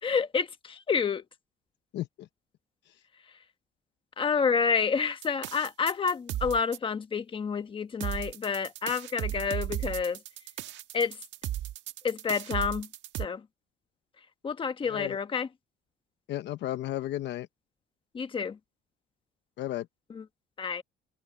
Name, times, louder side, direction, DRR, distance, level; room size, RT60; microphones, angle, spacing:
voice 1, 0.0-1.2 4.2-10.2 10.9-11.2 12.0-12.9 13.2-13.4 14.4-15.5 18.1-18.6 20.1-20.2 20.6-20.8, left 6 dB, 25° left, 1.2 m, -29 dB
voice 2, 1.9-2.3 2.9-3.0 14.8-15.2 16.3-17.5 19.6-19.9, left 14 dB, 60° left, 0.8 m, -34 dB
sound 1, 5.2-6.8 8.0-13.3, right 12 dB, 65° right, 1.5 m, -35 dB
cardioid pair, 150°, 20 cm